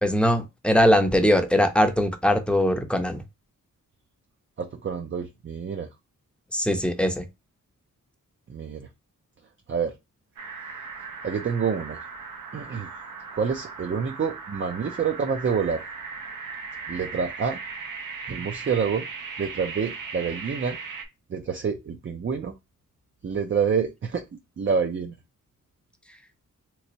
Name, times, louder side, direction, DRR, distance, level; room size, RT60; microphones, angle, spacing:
voice 1, 0.0-3.2 6.5-7.3, equal, 5° left, 0.6 m, -21 dB
voice 2, 4.6-5.9 8.5-8.9 9.7-9.9 11.2-12.1 12.5-12.9 13.3-15.9 16.9-17.6 18.3-19.0 19.4-20.8 21.3-22.5 23.2-25.1, right 6 dB, 40° right, 0.5 m, -27 dB
sound 1, 10.4-21.0, right 5 dB, 85° right, 0.8 m, -38 dB
3.3 x 3.1 x 2.7 m
wide cardioid pair, 125°, 32 cm